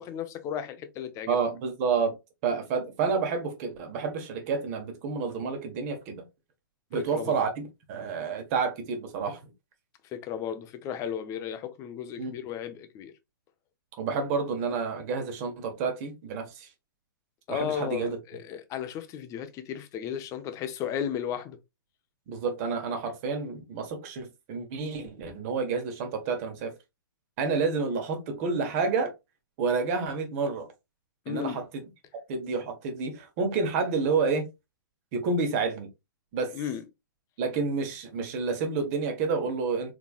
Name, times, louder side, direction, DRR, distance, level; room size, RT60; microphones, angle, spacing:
voice 1, 0.0-1.4 6.9-7.4 10.1-13.1 17.5-21.6 31.3-31.6 36.5-36.8, left 9 dB, 25° left, 0.7 m, -34 dB
voice 2, 1.3-2.1 2.4-6.2 6.9-9.4 12.2-12.3 14.0-16.7 17.5-18.2 22.3-26.7 27.4-29.1 29.6-30.7 31.3-31.8 32.3-34.5 35.1-35.9 36.3-36.5 37.4-39.9, right 5 dB, 40° right, 1.3 m, -29 dB
4.0 x 3.4 x 2.4 m
hypercardioid pair, 120°, 12 cm